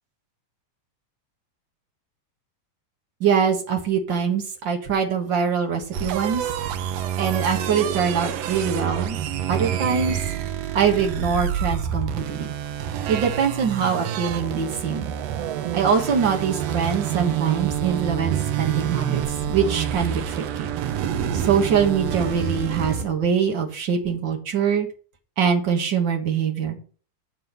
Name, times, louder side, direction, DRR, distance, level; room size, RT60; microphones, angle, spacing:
voice 1, 3.2-6.4 7.2-9.2 9.5-10.2 10.7-12.5 13.1-15.1 15.7-19.2 19.5-20.7 21.3-24.9 25.4-26.8, right 7 dB, 50° right, 2 dB, 1.6 m, -23 dB
sound 1, 5.9-23.1, right 9 dB, 80° right, 1.5 m, -27 dB
7.8 x 5.8 x 6.6 m, 0.41 s
omnidirectional pair, 3.7 m